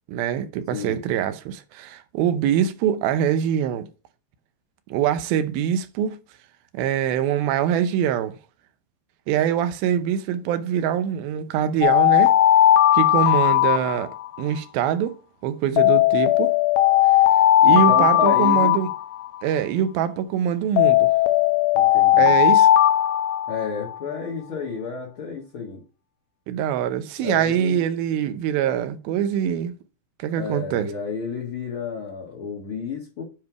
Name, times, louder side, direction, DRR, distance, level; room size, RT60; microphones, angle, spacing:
voice 1, 0.1-3.9 4.9-6.2 6.7-8.4 9.3-12.3 12.9-15.2 15.4-16.6 17.6-18.9 19.4-21.1 22.2-22.7 26.5-29.7 30.2-30.9, right 9 dB, 75° right, 2.5 m, -24 dB
Alarm, 11.8-14.4 15.8-19.4 20.8-24.0, left 12 dB, 80° left, 2.3 m, -17 dB
voice 2, 17.7-18.8 21.7-22.4 23.5-25.8 27.2-27.8 30.4-33.2, left 5 dB, 50° left, 1.7 m, -31 dB
9.7 x 3.3 x 4.6 m
omnidirectional pair, 4.6 m